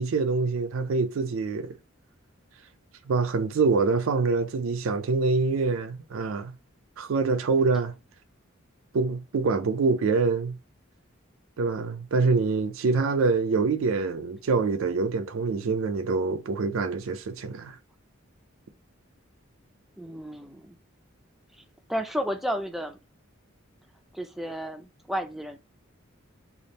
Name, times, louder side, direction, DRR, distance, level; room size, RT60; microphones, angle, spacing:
voice 1, 0.0-1.8 3.1-6.5 7.0-7.9 8.9-10.6 11.6-17.8, right 4 dB, 75° right, 0.4 m, -25 dB
voice 2, 20.0-20.8 21.9-23.0 24.1-25.6, equal, ahead, 0.4 m, -32 dB
3.4 x 2.4 x 3.9 m
head